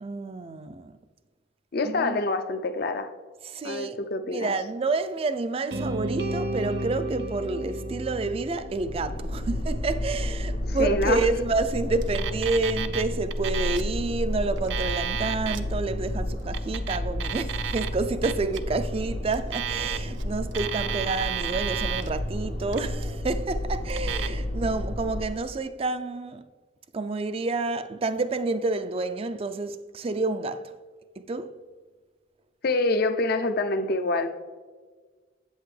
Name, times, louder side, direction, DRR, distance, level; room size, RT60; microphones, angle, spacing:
voice 1, 0.0-0.9 1.8-2.2 3.4-4.0 4.3-26.4 26.9-30.7 31.3-31.6, right 3 dB, 30° right, 0.4 m, -29 dB
voice 2, 1.7-3.1 3.6-4.5 10.7-11.3 32.6-34.3, left 2 dB, 55° left, 0.5 m, -26 dB
sound 1, 5.7-9.8, right 1 dB, 60° right, 0.8 m, -32 dB
sound 2, 8.3-25.5, left 1 dB, 80° left, 1.2 m, -31 dB
Alarm, 12.0-13.0 13.3-13.9 14.5-15.6 16.4-17.9 18.2-18.6 19.3-20.2 20.5-22.1 22.6-23.1 23.9-24.3, right 9 dB, 85° right, 0.5 m, -32 dB
8.0 x 8.0 x 3.2 m
head